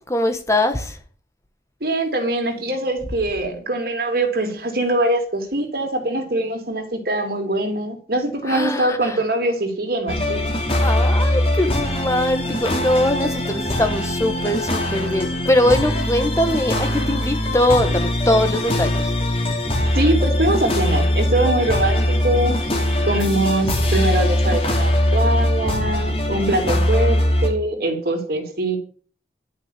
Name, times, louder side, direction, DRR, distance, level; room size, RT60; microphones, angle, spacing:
voice 1, 0.1-1.0 8.4-9.2 10.8-19.1, left 1 dB, 15° left, 7 dB, 1.4 m, -21 dB
voice 2, 1.8-10.4 19.9-22.6 23.0-28.8, right 1 dB, 55° right, 4 dB, 3.3 m, -23 dB
sound 1, 10.1-27.5, left 1 dB, 30° left, 3.2 m, -21 dB
12.0 x 6.6 x 8.4 m, 0.41 s
head